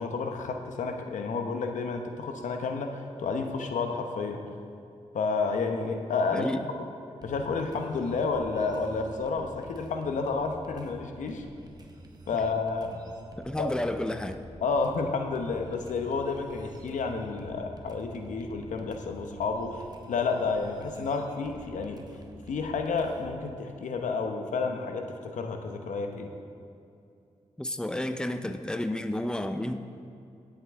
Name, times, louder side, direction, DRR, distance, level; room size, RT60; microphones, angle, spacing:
voice 1, 0.0-4.4 5.1-6.5 7.2-11.4 12.3-13.0 13.6-13.7 14.6-22.0 22.5-26.3, left 4 dB, 85° left, 4 dB, 0.9 m, -30 dB
sound 1, 7.2-23.5, right 2 dB, 30° right, 1.3 m, -49 dB
voice 2, 13.4-14.4 27.6-29.8, left 1 dB, 5° left, 8 dB, 0.8 m, -31 dB
17.0 x 7.6 x 3.6 m, 2.6 s
cardioid pair, 50°, 13 cm